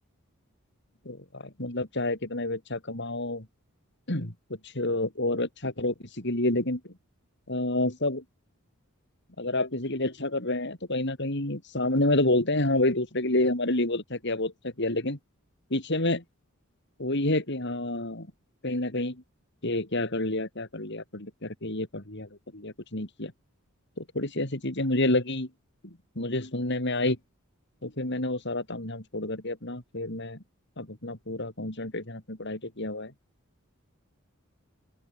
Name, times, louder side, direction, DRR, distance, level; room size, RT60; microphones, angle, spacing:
voice 1, 1.1-3.5 4.1-4.3 4.6-6.8 7.5-8.2 9.4-15.2 15.7-16.2 17.0-18.3 18.6-19.2 19.6-23.3 24.0-25.5 25.8-27.2 27.8-30.4 30.8-33.1, left 2 dB, 55° left, 4.1 m, -29 dB
open air
head